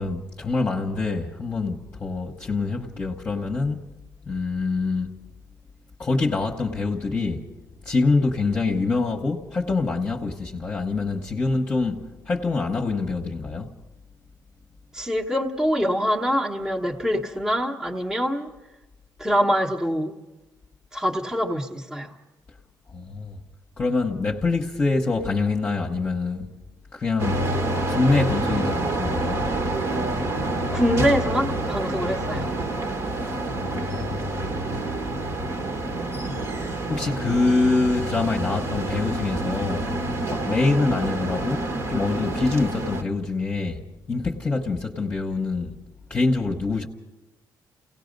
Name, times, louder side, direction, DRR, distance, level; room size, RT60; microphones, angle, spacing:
voice 1, 0.0-3.9 4.3-5.2 6.0-7.4 7.8-13.7 22.9-23.4 23.8-26.5 26.9-27.4 27.9-29.4 33.7-34.9 36.9-39.9 40.3-43.8 44.1-45.7 46.1-46.9, left 3 dB, 20° left, 1.0 m, -25 dB
voice 2, 14.9-18.5 19.2-20.1 20.9-22.1 30.7-32.5, equal, 5° right, 1.0 m, -24 dB
sound 1, 27.2-43.0, right 2 dB, 40° right, 1.2 m, -28 dB
30.0 x 17.5 x 5.2 m
cardioid pair, 180°, 7 cm